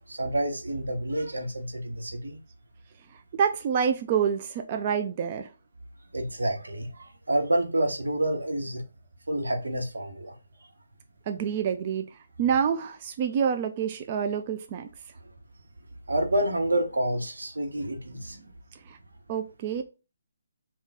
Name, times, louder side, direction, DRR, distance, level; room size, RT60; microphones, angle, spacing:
voice 1, 0.1-2.4 6.1-8.8 9.3-10.3 16.1-18.5, right 1 dB, 80° right, 1.0 m, -28 dB
voice 2, 3.4-5.5 11.3-12.0 12.4-14.9 18.9-19.0 19.3-19.8, right 7 dB, 35° right, 0.4 m, -27 dB
3.6 x 2.4 x 4.0 m
figure-of-eight pair, 150°, 0 cm